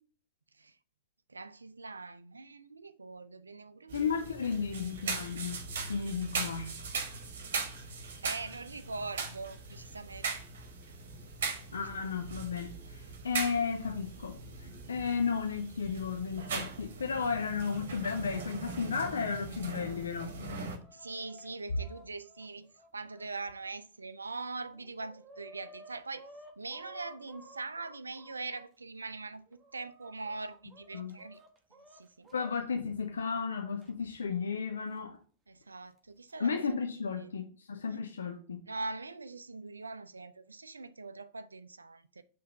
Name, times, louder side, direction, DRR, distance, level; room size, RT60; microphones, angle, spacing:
voice 1, 1.3-4.1 8.0-10.3 20.9-22.7 22.9-29.4 29.7-31.4 31.9-32.3 35.5-36.6 37.2-37.3 38.7-42.2, right 3 dB, 80° right, 0.4 m, -42 dB
voice 2, 3.9-5.6 5.9-6.7 11.7-20.4 30.9-31.2 32.3-35.2 36.4-38.6, left 5 dB, 70° left, 0.5 m, -34 dB
sound 1, 3.9-20.8, right 4 dB, 60° right, 1.1 m, -40 dB
Chicken rooster, 20.4-23.7 24.3-24.4 24.6-28.7 29.3-32.6 33.8-33.9 34.9-35.0 36.0-36.3, equal, 15° right, 1.1 m, -55 dB
5.5 x 3.4 x 5.4 m
figure-of-eight pair, 90°, 0 cm